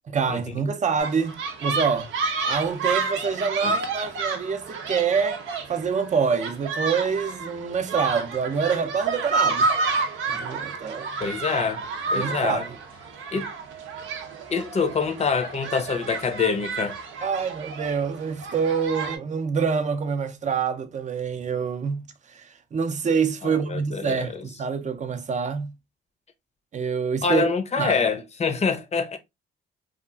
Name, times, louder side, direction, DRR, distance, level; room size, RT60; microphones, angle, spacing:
voice 1, 0.1-2.1 2.5-5.4 5.7-9.7 10.3-11.1 12.1-12.8 17.2-25.7 26.7-28.0, right 6 dB, 35° right, 0.5 m, -26 dB
sound 1, 1.0-19.2, right 4 dB, 80° right, 0.6 m, -30 dB
voice 2, 11.2-11.9 12.1-12.6 13.3-13.5 14.5-17.0 23.4-24.3 27.2-29.2, left 5 dB, 35° left, 0.6 m, -25 dB
2.9 x 2.4 x 2.3 m
cardioid pair, 90°, 20 cm